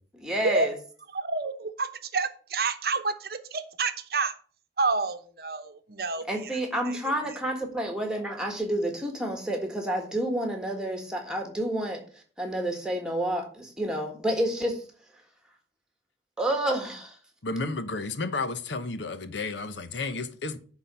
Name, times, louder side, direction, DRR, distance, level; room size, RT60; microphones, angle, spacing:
voice 1, 0.1-0.7 6.3-12.0 12.4-14.8 16.4-17.2, right 1 dB, 5° right, 1.6 m, -29 dB
voice 2, 1.1-4.3 4.8-6.2 6.9-7.0, right 3 dB, 55° right, 0.8 m, -29 dB
voice 3, 17.4-20.6, left 3 dB, 80° left, 0.9 m, -32 dB
10.0 x 4.0 x 6.8 m
head